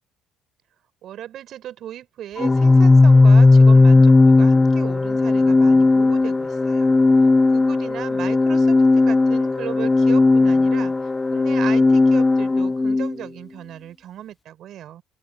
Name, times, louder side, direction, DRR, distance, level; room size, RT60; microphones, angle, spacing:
voice 1, 1.0-15.0, right 11 dB, 60° right, 5.4 m, -36 dB
Organ, 2.4-13.1, left 3 dB, 20° left, 0.4 m, -15 dB
open air
hypercardioid pair, 60°, 0 cm